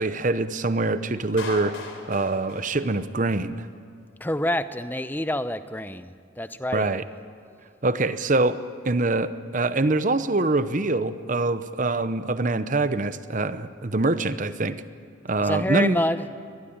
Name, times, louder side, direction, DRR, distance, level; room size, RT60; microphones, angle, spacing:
voice 1, 0.0-1.8 2.1-3.7 6.7-7.0 7.8-8.6 8.8-14.8 15.2-16.0, right 2 dB, 40° right, 12 dB, 0.9 m, -24 dB
Clapping, 1.4-3.4, left 3 dB, 75° left, 3.6 m, -39 dB
voice 2, 4.2-6.9 15.4-16.2, left 1 dB, 10° left, 12 dB, 0.6 m, -27 dB
23.5 x 20.0 x 8.9 m, 2.3 s
head